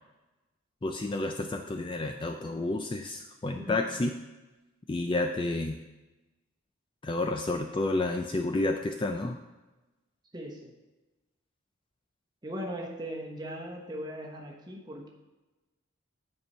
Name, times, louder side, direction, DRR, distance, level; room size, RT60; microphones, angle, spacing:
voice 1, 0.8-4.1 4.9-5.8 7.0-9.4, left 2 dB, 25° left, 4 dB, 0.3 m, -30 dB
voice 2, 10.3-10.7 12.4-15.1, equal, 20° right, 0 dB, 1.0 m, -39 dB
9.5 x 4.5 x 5.5 m, 1.1 s
head